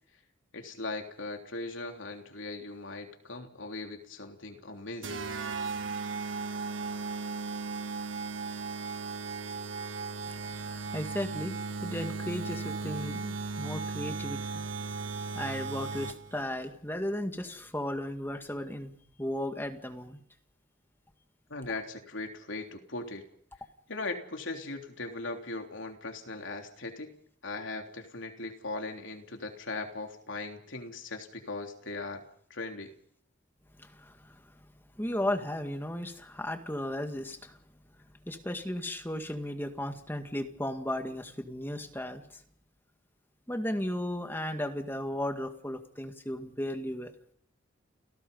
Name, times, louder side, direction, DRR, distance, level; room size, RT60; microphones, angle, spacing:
voice 1, 0.5-5.2 21.5-23.3 23.9-27.1 27.4-32.2 32.5-32.9, left 3 dB, 80° left, 3 dB, 3.5 m, -39 dB
sound 1, 5.0-16.4, right 4 dB, 80° right, 1.4 m, -36 dB
voice 2, 10.3-14.6 15.3-20.2 33.8-34.4 35.0-37.6 38.3-42.4 43.5-47.1, left 1 dB, 10° left, 6 dB, 2.0 m, -35 dB
30.0 x 17.5 x 5.6 m, 0.63 s
head